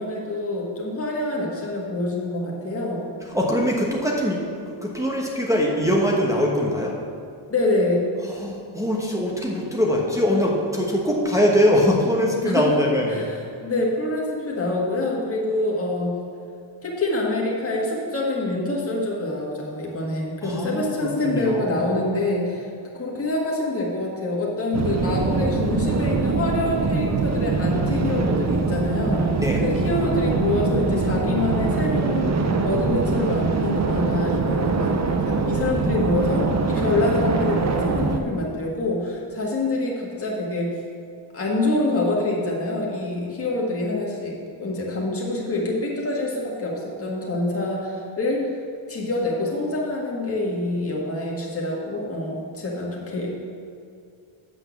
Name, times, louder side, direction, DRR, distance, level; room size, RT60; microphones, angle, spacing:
voice 1, 0.0-3.0 7.5-8.0 12.4-12.7 13.1-16.1 16.8-22.7 22.9-29.3 29.6-40.7 41.3-48.5 48.9-53.3, left 2 dB, 30° left, -3 dB, 1.8 m, -26 dB
voice 2, 3.3-7.0 8.2-13.2 20.4-21.9 29.4-29.6, equal, 5° right, -3 dB, 1.1 m, -22 dB
sound 1, 24.7-38.2, right 4 dB, 35° right, 0.7 m, -23 dB
8.0 x 6.3 x 7.1 m, 2.4 s
wide cardioid pair, 140°, 48 cm